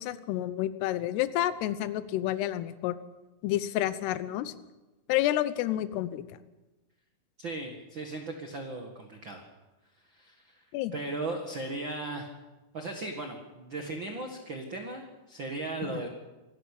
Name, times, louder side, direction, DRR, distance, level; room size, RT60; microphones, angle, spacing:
voice 1, 0.0-2.9 3.4-4.5 5.1-6.2 10.7-10.9 15.9-16.0, left 13 dB, 80° left, 14 dB, 3.0 m, -29 dB
voice 2, 7.4-9.4 10.0-10.6 10.9-12.3 12.7-16.1, right 2 dB, 45° right, 3 dB, 1.6 m, -37 dB
25.5 x 13.0 x 8.4 m, 1.1 s
omnidirectional pair, 4.7 m